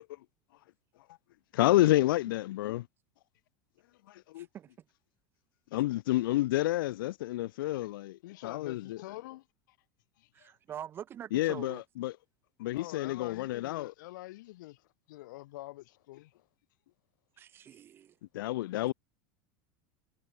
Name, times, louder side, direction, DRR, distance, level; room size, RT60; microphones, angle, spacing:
voice 1, 1.5-2.9 4.1-4.5 5.7-9.0 11.3-12.1 12.6-13.9 18.3-18.9, left 16 dB, 90° left, 1.0 m, -29 dB
voice 2, 4.4-4.7 10.3-11.8 17.4-18.2, right 10 dB, 20° right, 2.1 m, -44 dB
voice 3, 8.2-9.8 10.2-10.5 12.7-16.5 17.6-17.8, left 18 dB, 65° left, 6.7 m, -47 dB
supercardioid pair, 180°, 11 cm